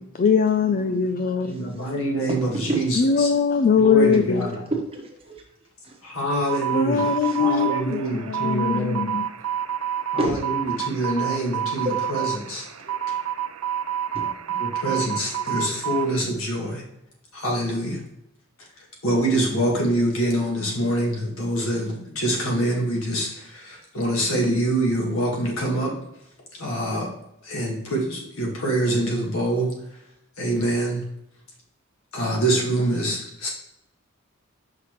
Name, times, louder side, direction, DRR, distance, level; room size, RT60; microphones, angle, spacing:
voice 1, 0.2-1.8 3.0-4.5 6.7-9.3, left 5 dB, 40° left, 8 dB, 0.3 m, -21 dB
voice 2, 1.4-3.3 3.8-4.5 6.0-7.1 7.4-9.2 10.1-12.6 14.6-16.8 17.3-18.0 19.0-25.9 26.6-27.1 27.5-29.7 30.4-31.0 32.1-33.5, right 1 dB, 70° left, -2 dB, 1.8 m, -25 dB
voice 3, 4.4-5.4 5.8-6.0 7.2-7.4 7.7-8.3 8.7-8.8 10.2-10.4 10.9-11.1 12.9-13.0 14.1-14.6 15.1-15.7, right 2 dB, 25° right, 0 dB, 1.2 m, -31 dB
sound 1, 6.3-16.2, right 10 dB, 80° right, 0.5 m, -29 dB
5.8 x 5.8 x 3.1 m, 0.84 s
head